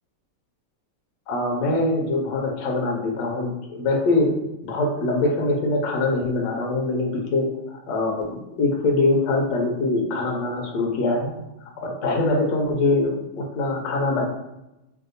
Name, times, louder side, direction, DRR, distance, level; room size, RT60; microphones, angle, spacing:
voice 1, 1.3-4.3 4.6-11.3 11.8-14.2, left 2 dB, 70° left, 0 dB, 1.1 m, -23 dB
3.3 x 2.6 x 2.5 m, 0.93 s
omnidirectional pair, 2.4 m